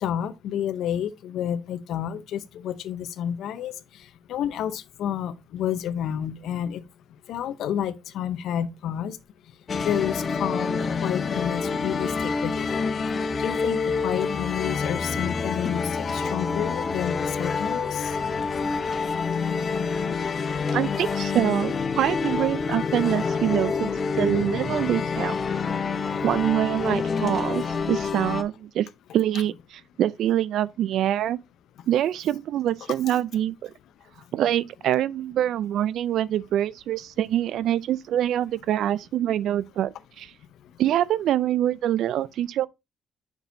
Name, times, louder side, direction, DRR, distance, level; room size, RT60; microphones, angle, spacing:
voice 1, 0.0-3.7 4.3-6.8 7.3-9.2 9.8-12.8 13.4-18.1, left 10 dB, 80° left, 0.7 m, -30 dB
sound 1, 9.7-28.4, left 5 dB, 45° left, 0.7 m, -27 dB
voice 2, 20.7-23.9 24.2-25.3 26.2-28.9 29.1-31.4 31.9-33.7 34.3-40.3 40.8-42.7, right 11 dB, 75° right, 0.4 m, -25 dB
6.9 x 6.0 x 2.7 m
cardioid pair, 90°, 0 cm